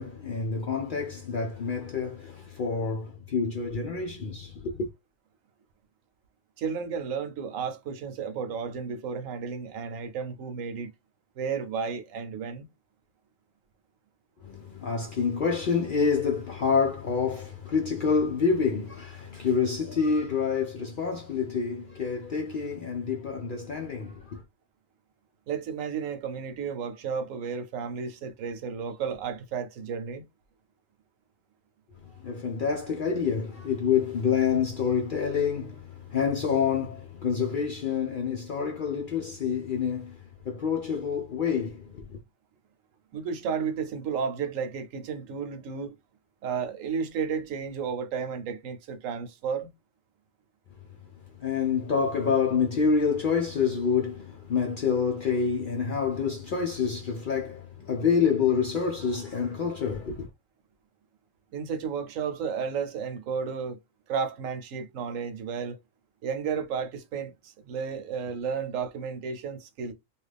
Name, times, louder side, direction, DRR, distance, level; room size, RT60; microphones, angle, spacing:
voice 1, 0.0-4.9 14.4-24.4 32.2-40.2 40.5-42.2 51.4-60.3, left 6 dB, 60° left, 0.5 m, -27 dB
voice 2, 6.6-10.9 11.4-12.7 25.5-30.2 43.1-45.9 46.4-49.7 61.5-63.8 64.1-65.8 66.2-69.9, right 6 dB, 75° right, 1.0 m, -32 dB
3.0 x 2.4 x 3.3 m
omnidirectional pair, 1.4 m